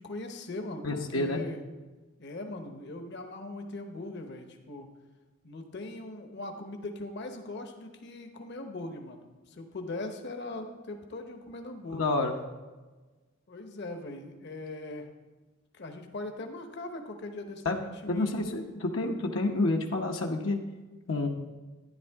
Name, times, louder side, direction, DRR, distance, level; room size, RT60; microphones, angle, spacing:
voice 1, 0.0-1.6 2.2-4.9 5.4-12.1 13.5-15.1 15.7-18.3, left 2 dB, 60° left, 5 dB, 1.0 m, -40 dB
voice 2, 0.8-1.4 11.9-12.3 17.6-17.8 18.1-20.6 21.1-21.3, left 2 dB, 80° left, 2 dB, 1.0 m, -29 dB
11.5 x 10.0 x 3.6 m, 1.3 s
head